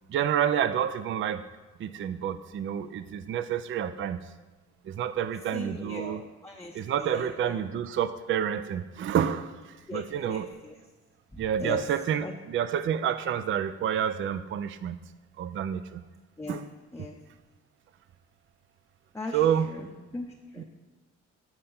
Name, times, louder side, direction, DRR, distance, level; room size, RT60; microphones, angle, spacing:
voice 1, 0.1-1.5 1.8-4.2 4.9-6.2 6.7-10.5 11.4-15.0 15.4-16.0 16.5-16.6 19.3-19.7 20.6-20.7, right 9 dB, 40° right, 13 dB, 0.4 m, -29 dB
voice 2, 5.5-7.8 9.9-10.0 10.3-10.8 11.3-11.9 12.2-12.4 16.4-16.6 16.9-17.2 19.1-20.6, left 2 dB, 10° left, 0 dB, 0.7 m, -39 dB
8.8 x 4.3 x 5.4 m, 1.2 s
cardioid pair, 90°, 30 cm